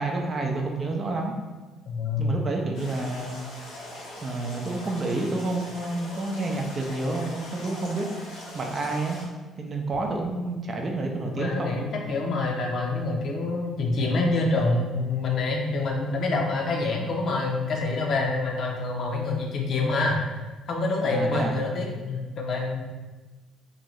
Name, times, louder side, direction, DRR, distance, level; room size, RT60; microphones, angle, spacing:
voice 1, 0.0-1.3 2.2-3.4 4.2-8.1 8.5-9.2 9.6-11.7 21.0-21.5, right 2 dB, 45° right, 1 dB, 0.5 m, -29 dB
voice 2, 1.9-2.4 11.4-20.2 20.7-22.8, left 3 dB, 60° left, 0 dB, 0.6 m, -26 dB
sound 1, 2.7-9.2, left 1 dB, 85° left, 1.0 m, -41 dB
2.6 x 2.5 x 3.1 m, 1.2 s
hypercardioid pair, 55°, 0 cm